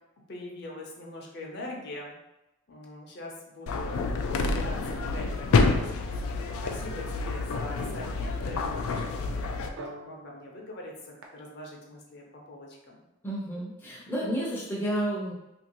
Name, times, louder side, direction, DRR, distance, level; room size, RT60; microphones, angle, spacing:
voice 1, 0.3-2.2 2.7-4.0 4.4-13.0, left 1 dB, 50° left, -1 dB, 0.6 m, -43 dB
sound 1, 3.7-9.7, left 3 dB, 85° left, 0.3 m, -28 dB
sound 2, 4.7-11.2, right 1 dB, 55° right, 0.4 m, -47 dB
voice 2, 13.2-15.3, right 1 dB, 10° left, -5 dB, 0.4 m, -31 dB
2.8 x 2.5 x 2.9 m, 0.95 s
head